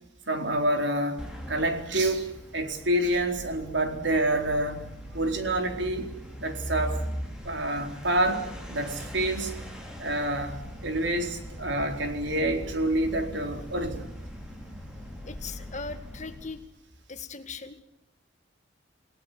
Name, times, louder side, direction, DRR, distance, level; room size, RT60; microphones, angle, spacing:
voice 1, 0.3-4.8 5.1-6.1 6.4-7.0 7.4-9.5 10.0-14.1, right 1 dB, 65° right, 5 dB, 4.3 m, -28 dB
sound 1, 1.2-16.7, equal, 5° right, 4.9 m, -40 dB
voice 2, 15.2-16.6 17.1-17.8, left 4 dB, 35° left, 9 dB, 1.9 m, -39 dB
29.0 x 18.5 x 9.4 m, 0.87 s
head